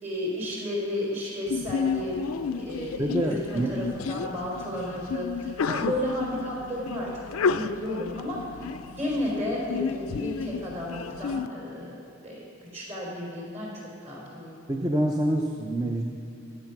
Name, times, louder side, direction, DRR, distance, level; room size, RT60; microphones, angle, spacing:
voice 1, 0.0-2.2 2.6-8.6 9.0-14.6, left 1 dB, 35° right, -3 dB, 4.1 m, -33 dB
Sneeze, 1.5-11.5, left 5 dB, 90° left, 0.5 m, -32 dB
voice 2, 3.0-3.7 14.7-16.1, right 1 dB, 15° right, 2 dB, 0.7 m, -26 dB
15.5 x 10.5 x 6.0 m, 2.7 s
head